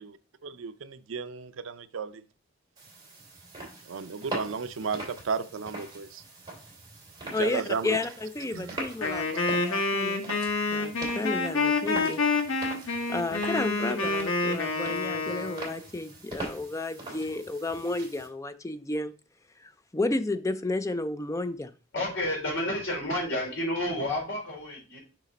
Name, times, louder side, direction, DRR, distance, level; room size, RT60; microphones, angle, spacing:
voice 1, 0.4-2.2 3.9-6.2 7.4-8.0 8.5-8.8, right 5 dB, 75° right, 0.5 m, -34 dB
sound 1, 2.8-18.3, right 2 dB, 20° right, 3.1 m, -43 dB
voice 2, 7.3-10.2 10.7-12.2 12.9-19.1 19.6-21.7, left 2 dB, 15° left, 0.4 m, -32 dB
Wind instrument woodwind instrument, 9.0-15.7, left 3 dB, 85° left, 1.4 m, -28 dB
voice 3, 21.9-25.0, left 1 dB, 65° left, 3.8 m, -30 dB
6.6 x 5.0 x 4.0 m
head